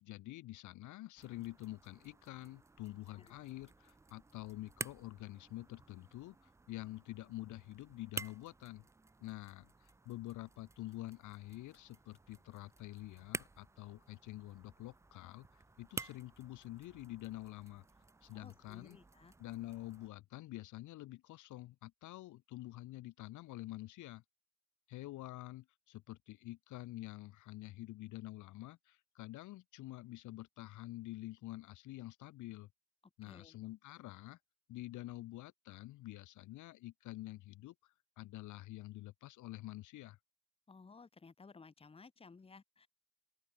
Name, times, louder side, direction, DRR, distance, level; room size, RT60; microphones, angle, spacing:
voice 1, 0.0-8.8 9.2-17.8 18.2-19.0 19.4-24.2 24.9-32.7 33.2-34.4 34.7-40.2, left 17 dB, 75° left, 0.7 m, -48 dB
sound 1, 1.2-20.1, right 3 dB, 10° right, 0.3 m, -52 dB
sound 2, 10.2-18.6, left 6 dB, 40° left, 7.4 m, -82 dB
voice 2, 18.3-19.3 33.3-33.6 40.7-42.9, left 4 dB, 20° left, 0.9 m, -57 dB
cardioid pair, 90°, 30 cm